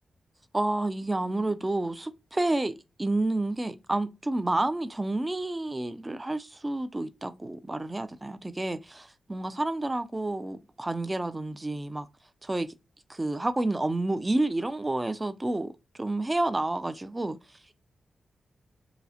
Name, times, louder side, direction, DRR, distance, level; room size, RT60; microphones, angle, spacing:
voice 1, 0.5-12.1 12.4-12.7 13.1-15.7 16.0-17.4, right 2 dB, 15° right, 0.3 m, -29 dB
5.6 x 2.0 x 2.7 m
wide cardioid pair, 135°, 0 cm